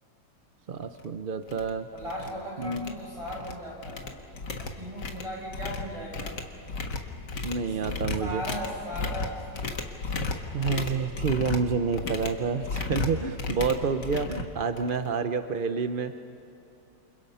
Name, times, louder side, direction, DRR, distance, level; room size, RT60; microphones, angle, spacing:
voice 1, 0.7-1.9 2.6-2.9 7.4-8.4 10.5-16.2, right 5 dB, 55° right, 8 dB, 0.6 m, -29 dB
sound 1, 0.9-1.0 1.5-1.7 2.0-2.3 2.6-3.5 3.8-15.1, left 3 dB, 70° left, 2.3 m, -34 dB
voice 2, 1.9-4.2 4.6-6.4 7.7-7.8 8.2-9.5 14.7-15.0, equal, 15° right, -3 dB, 7.8 m, -37 dB
29.0 x 26.5 x 5.6 m, 2.8 s
omnidirectional pair, 1.9 m